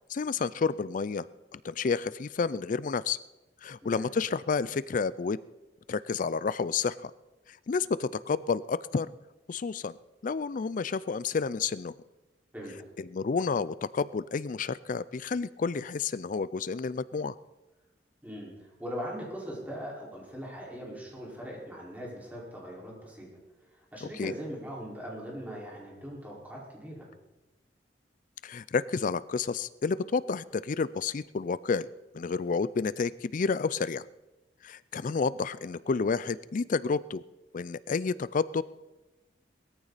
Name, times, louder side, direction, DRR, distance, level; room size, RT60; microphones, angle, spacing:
voice 1, 0.1-1.3 1.5-3.2 3.6-5.4 5.9-7.1 7.5-9.1 9.5-10.0 10.2-11.9 13.0-17.3 24.0-24.3 28.4-31.9 32.1-34.0 34.6-37.2 37.5-38.6, left 5 dB, 50° left, 18 dB, 0.4 m, -30 dB
voice 2, 18.2-23.3 23.6-27.1, equal, 10° right, -4 dB, 4.7 m, -40 dB
20.0 x 14.0 x 4.1 m, 1.0 s
head